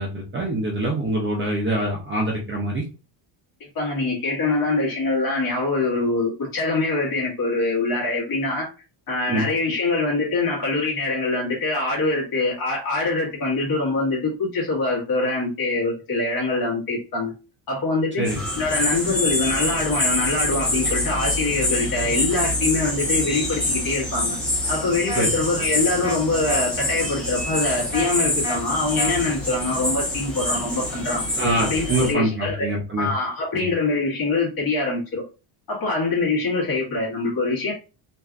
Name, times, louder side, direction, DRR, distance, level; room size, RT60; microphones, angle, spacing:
voice 1, 0.0-2.8 9.3-9.5 18.2-18.4 25.1-25.3 31.4-33.1 33.5-33.7, right 1 dB, 25° right, -2 dB, 0.5 m, -24 dB
voice 2, 3.6-8.7 9.1-17.3 17.7-18.2 18.6-24.4 24.7-31.2 31.6-32.7 33.0-35.2 35.7-37.7, left 3 dB, 45° left, -3 dB, 1.6 m, -24 dB
sound 1, 18.2-32.1, left 1 dB, ahead, 0.8 m, -26 dB
sound 2, 25.1-25.2 26.0-26.2 26.5-26.6 27.9-28.1 28.4-28.6 29.0-29.1, left 1 dB, 20° left, 1.4 m, -29 dB
3.2 x 2.5 x 2.4 m, 0.32 s
cardioid pair, 175°, 49 cm